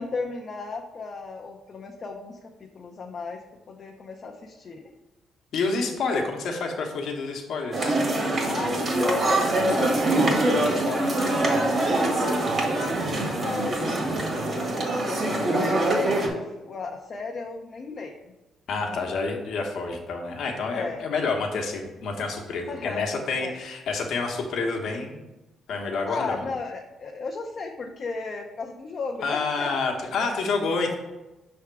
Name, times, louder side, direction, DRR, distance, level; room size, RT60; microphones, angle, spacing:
voice 1, 0.0-4.9 8.4-12.5 12.8-15.2 15.7-18.1 18.9-19.1 20.7-21.0 22.7-23.1 23.4-23.6 26.1-30.4, left 4 dB, 45° left, 1 dB, 0.6 m, -35 dB
voice 2, 5.5-8.5 18.7-25.2 25.7-26.4 29.2-31.0, left 4 dB, 70° left, 1 dB, 1.0 m, -28 dB
sound 1, 7.7-16.3, right 2 dB, 45° right, 1.6 m, -24 dB
5.8 x 3.5 x 4.6 m, 1.1 s
cardioid pair, 90°, 0 cm